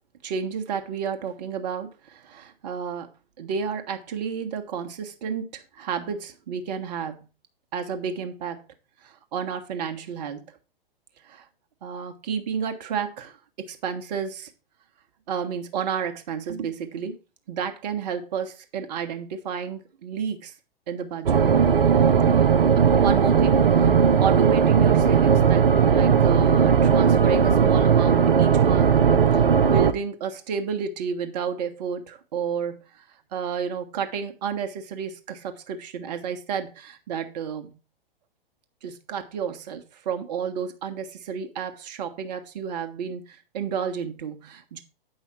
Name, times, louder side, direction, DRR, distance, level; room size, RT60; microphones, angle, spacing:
voice 1, 0.2-3.1 3.4-7.2 7.7-8.6 9.0-10.4 11.2-11.5 11.8-14.5 15.3-17.2 17.5-20.5 20.9-21.4 22.4-22.5 22.9-23.9 24.2-29.0 29.3-33.0 33.3-37.7 38.8-44.8, right 7 dB, 45° right, 1.4 m, -31 dB
sound 1, 21.3-29.9, right 7 dB, 70° right, 0.8 m, -18 dB
8.6 x 5.5 x 4.4 m
figure-of-eight pair, 115°, 29 cm